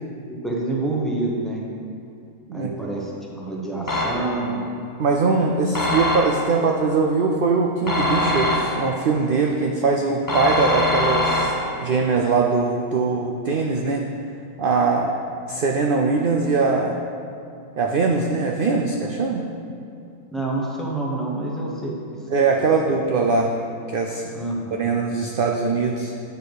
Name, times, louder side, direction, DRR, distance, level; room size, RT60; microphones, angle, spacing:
voice 1, 0.3-1.6 2.5-4.6 20.3-22.2 22.6-22.7 24.3-24.9, right 2 dB, ahead, -4 dB, 0.9 m, -27 dB
sound 1, 3.9-4.6 5.7-6.6 7.9-9.1 10.3-11.9, left 1 dB, 20° left, 0.5 m, -23 dB
voice 2, 5.0-11.5 11.8-14.0 14.6-15.2 15.5-17.0 17.8-19.4 22.3-23.5 23.9-24.2 24.7-26.1, right 4 dB, 65° right, 1 dB, 0.5 m, -21 dB
8.9 x 4.7 x 4.7 m, 2.5 s
omnidirectional pair, 1.4 m